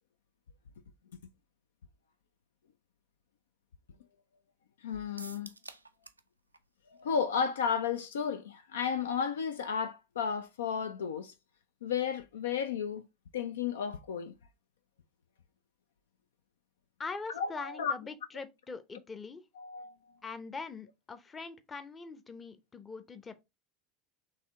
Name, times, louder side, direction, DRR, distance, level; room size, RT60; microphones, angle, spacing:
voice 1, 4.8-5.5 7.0-11.3 11.8-13.0 13.3-14.3 17.3-17.9 19.6-19.9, left 7 dB, 70° left, 0.3 m, -33 dB
sound 1, 5.2-6.3 6.5-6.6 7.0-7.1, right 2 dB, 85° right, 0.3 m, -48 dB
voice 2, 17.0-19.4 20.2-23.4, left 4 dB, 20° left, 0.7 m, -42 dB
4.2 x 3.1 x 3.6 m
figure-of-eight pair, 75°, 0 cm